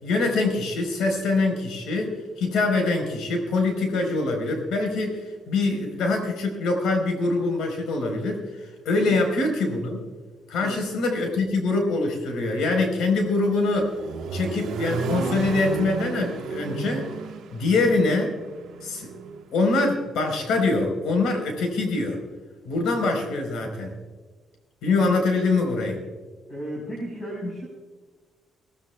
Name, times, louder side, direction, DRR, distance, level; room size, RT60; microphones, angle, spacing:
voice 1, 0.0-10.0 10.5-13.9 14.3-17.1 17.5-18.3 18.8-19.1 19.5-22.2 22.6-23.9 24.8-26.0, left 3 dB, 85° left, 3 dB, 4.1 m, -24 dB
Accelerating revving vroom, 13.4-19.4, right 4 dB, 70° right, 1.2 m, -32 dB
voice 2, 26.5-27.7, equal, 35° left, -3 dB, 4.3 m, -34 dB
23.5 x 17.5 x 2.3 m, 1.4 s
cardioid pair, 155°, 0 cm